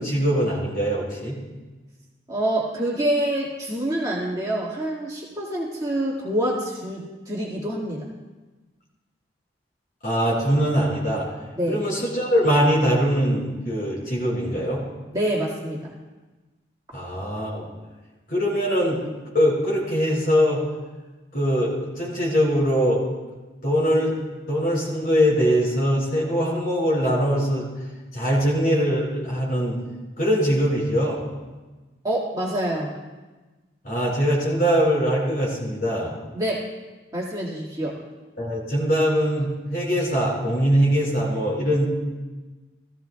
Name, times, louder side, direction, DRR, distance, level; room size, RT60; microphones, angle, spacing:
voice 1, 0.0-1.4 10.0-11.2 11.7-14.8 16.9-17.7 18.3-19.0 19.3-20.6 21.3-23.0 23.6-24.1 24.5-27.6 28.1-29.8 30.2-31.2 33.8-36.1 38.4-41.9, equal, 50° left, -4 dB, 4.7 m, -22 dB
voice 2, 2.3-8.0 11.5-11.8 15.1-15.9 32.0-32.9 36.3-36.6 37.1-37.9, right 1 dB, 20° right, -5 dB, 1.8 m, -26 dB
17.5 x 15.0 x 2.2 m, 1.2 s
head